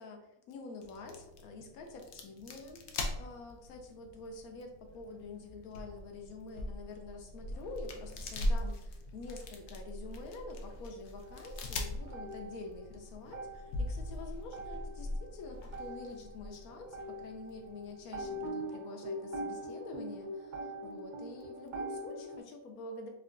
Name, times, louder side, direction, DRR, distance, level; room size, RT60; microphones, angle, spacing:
voice 1, 0.0-23.1, left 3 dB, 85° left, 4 dB, 1.1 m, -47 dB
sound 1, 0.8-18.5, left 1 dB, 65° left, 0.8 m, -41 dB
sound 2, 11.2-13.0 13.2-22.4, right 1 dB, 85° right, 1.4 m, -43 dB
4.7 x 2.3 x 2.5 m, 0.87 s
omnidirectional pair, 1.5 m